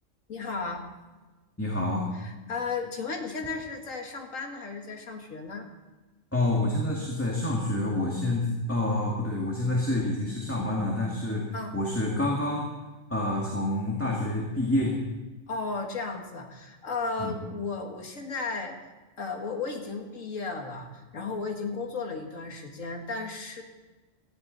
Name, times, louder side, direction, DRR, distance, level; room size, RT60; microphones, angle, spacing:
voice 1, 0.3-0.9 2.2-5.7 11.5-11.8 15.5-18.8 19.2-23.6, left 4 dB, 85° left, 3 dB, 2.2 m, -34 dB
voice 2, 1.6-2.1 6.3-12.7 13.1-15.0 17.2-17.3, left 1 dB, 10° left, -3 dB, 2.1 m, -28 dB
17.5 x 14.5 x 4.1 m, 1.2 s
omnidirectional pair, 1.3 m